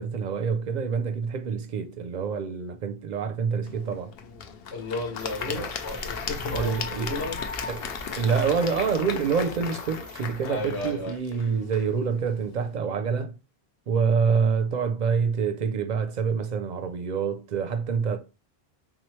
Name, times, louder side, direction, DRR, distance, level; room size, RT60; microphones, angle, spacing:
voice 1, 0.0-4.1 5.5-5.7 6.5-7.1 7.7-7.9 8.2-13.3 13.9-18.2, right 6 dB, 55° right, 0.5 m, -26 dB
Applause / Crowd, 3.7-12.7, left 7 dB, 70° left, 0.8 m, -37 dB
voice 2, 4.7-7.4 10.4-11.2, left 2 dB, 85° left, 1.4 m, -33 dB
sound 1, 5.2-11.0, right 1 dB, 5° left, 0.6 m, -42 dB
3.6 x 3.1 x 3.0 m
omnidirectional pair, 1.1 m